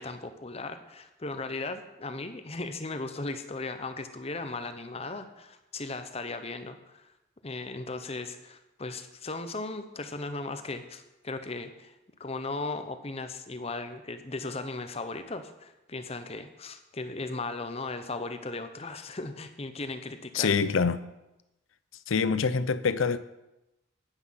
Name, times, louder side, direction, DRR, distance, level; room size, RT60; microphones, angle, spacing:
voice 1, 0.0-7.1 7.4-11.9 12.2-20.5, left 3 dB, 30° left, 0.8 m, -37 dB
voice 2, 20.3-21.0 22.1-23.2, left 5 dB, 85° left, 0.6 m, -25 dB
9.9 x 9.7 x 5.8 m
head